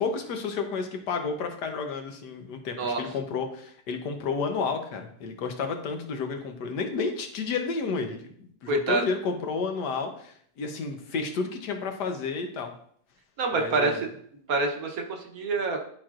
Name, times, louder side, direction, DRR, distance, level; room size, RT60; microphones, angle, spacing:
voice 1, 0.0-12.7 13.5-14.0, left 4 dB, 85° left, 4 dB, 1.5 m, -31 dB
voice 2, 8.7-9.0 13.4-14.1 14.5-15.8, right 3 dB, 65° right, 2 dB, 1.4 m, -26 dB
11.5 x 4.4 x 2.5 m, 0.62 s
omnidirectional pair, 1.7 m